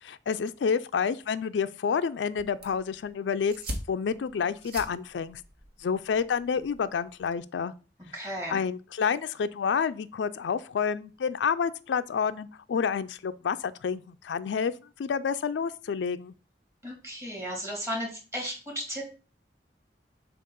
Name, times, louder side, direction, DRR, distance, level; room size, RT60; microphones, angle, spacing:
voice 1, 0.0-3.5 3.9-5.4 5.8-7.7 8.5-14.7 15.0-16.3, left 6 dB, 90° left, 0.4 m, -29 dB
sound 1, 2.4-7.4, equal, 60° right, 1.3 m, -43 dB
voice 2, 8.1-8.6 16.8-19.0, equal, 15° right, 2.2 m, -34 dB
7.3 x 2.4 x 5.3 m
head